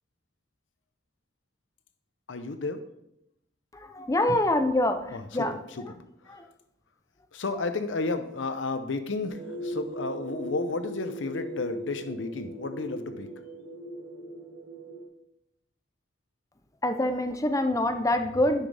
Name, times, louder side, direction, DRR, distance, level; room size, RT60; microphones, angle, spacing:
voice 1, 2.3-2.8 5.1-6.0 6.3-6.4 7.3-13.3, left 3 dB, 90° left, 9 dB, 0.7 m, -32 dB
voice 2, 3.7-5.5 6.3-6.5 16.8-18.7, left 1 dB, 20° left, 7 dB, 0.6 m, -25 dB
sound 1, 9.3-15.1, right 1 dB, 80° right, 1.5 m, -39 dB
9.7 x 6.2 x 3.4 m, 0.81 s
head